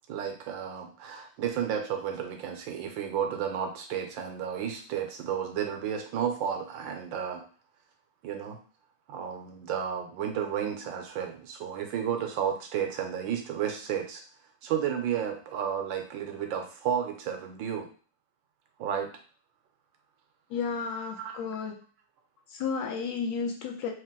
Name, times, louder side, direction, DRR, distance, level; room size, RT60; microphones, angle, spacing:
voice 1, 0.1-7.4 8.2-8.6 9.1-14.2 14.6-17.9 18.8-19.1 21.2-21.4, right 8 dB, 75° right, 5 dB, 1.3 m, -32 dB
voice 2, 20.5-21.7 22.5-23.9, left 5 dB, 70° left, 2 dB, 1.2 m, -32 dB
3.2 x 3.2 x 3.6 m, 0.41 s
omnidirectional pair, 2.2 m